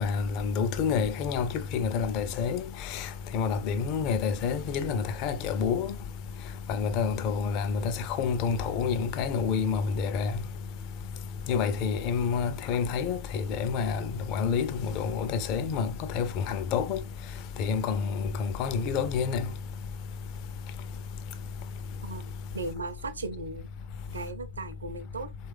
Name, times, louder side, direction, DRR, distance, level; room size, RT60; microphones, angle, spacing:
voice 1, 0.0-5.9 6.7-10.3 11.5-17.0 17.6-19.5, left 6 dB, 30° left, 0.4 m, -28 dB
voice 2, 22.5-23.7 24.1-25.3, right 3 dB, 75° right, 0.6 m, -36 dB
3.0 x 2.4 x 3.2 m
figure-of-eight pair, 125°, 0 cm